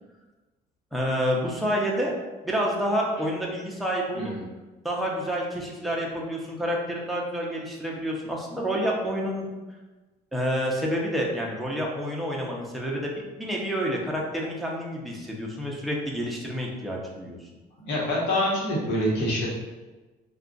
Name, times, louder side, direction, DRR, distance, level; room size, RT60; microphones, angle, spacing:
voice 1, 0.9-2.1 2.4-4.3 4.8-9.5 10.3-13.1 13.4-17.4, equal, ahead, -3 dB, 0.6 m, -28 dB
voice 2, 17.8-19.6, equal, 80° left, -4 dB, 1.1 m, -26 dB
2.4 x 2.3 x 3.8 m, 1.2 s
cardioid pair, 110°, 17 cm